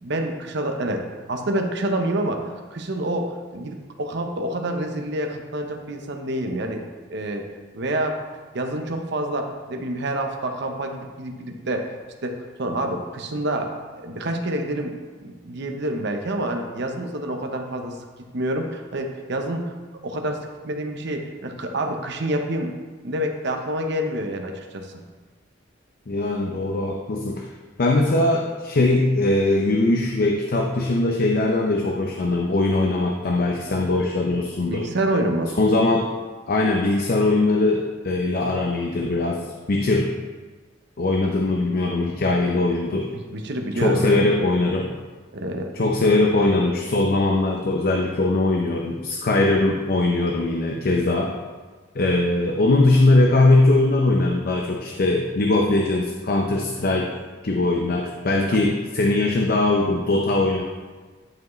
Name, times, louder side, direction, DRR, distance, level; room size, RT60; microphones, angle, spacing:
voice 1, 0.0-1.0 1.3-2.4 2.7-6.8 7.1-7.5 7.7-8.2 8.5-11.9 12.2-14.9 15.2-17.9 18.3-19.6 20.0-20.4 20.6-22.7 23.0-25.0 34.7-35.6 43.1-44.2 45.3-45.7 58.5-58.6, right 1 dB, 60° right, 4 dB, 0.8 m, -27 dB
voice 2, 26.1-27.5 27.8-34.9 35.6-36.1 36.5-40.1 41.0-43.1 43.7-44.9 45.7-51.3 51.9-57.1 57.4-60.6, left 2 dB, 50° left, 1 dB, 0.5 m, -21 dB
10.5 x 4.8 x 3.1 m, 1.4 s
head